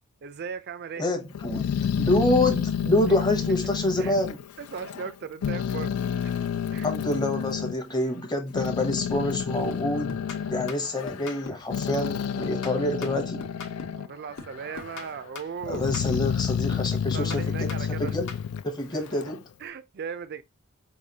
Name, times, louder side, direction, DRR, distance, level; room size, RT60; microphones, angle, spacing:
voice 1, 0.2-1.0 4.0-4.2 4.6-6.0 6.2-6.4 6.7-6.9 13.9-15.9 16.9-18.1 18.9-19.0 19.6-20.4, right 6 dB, 45° right, 0.4 m, -37 dB
voice 2, 1.0-1.7 2.0-4.4 6.8-10.2 10.5-13.5 15.7-18.3 18.6-19.4, left 1 dB, 20° left, 0.7 m, -27 dB
Growling, 1.3-5.1 5.4-7.7 8.3-14.1 14.5-15.2 15.6-19.4, left 8 dB, 90° left, 0.4 m, -30 dB
sound 1, 9.7-11.7 12.0-14.1 14.4-16.4 16.7-18.5, left 4 dB, 55° left, 0.8 m, -42 dB
4.7 x 2.3 x 2.7 m
head